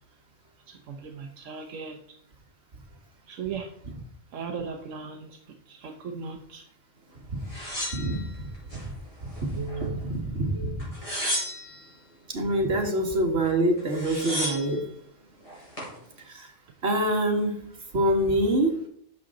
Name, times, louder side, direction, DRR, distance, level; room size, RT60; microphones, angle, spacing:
voice 1, 0.7-2.0 3.3-3.7 4.3-6.6 9.5-10.0, right 5 dB, 80° right, 2 dB, 1.2 m, -37 dB
sound 1, 7.5-8.8 9.3-10.1 10.8-11.9 13.4-13.5 13.8-14.8 15.4-15.9, equal, 25° left, 4.9 m, -33 dB
voice 2, 7.9-8.2 9.5-10.8 12.3-14.8 16.3-16.5 16.8-17.6 17.9-18.7, right 1 dB, 60° right, 1 dB, 2.1 m, -25 dB
10.5 x 6.9 x 3.8 m, 0.65 s
omnidirectional pair, 1.3 m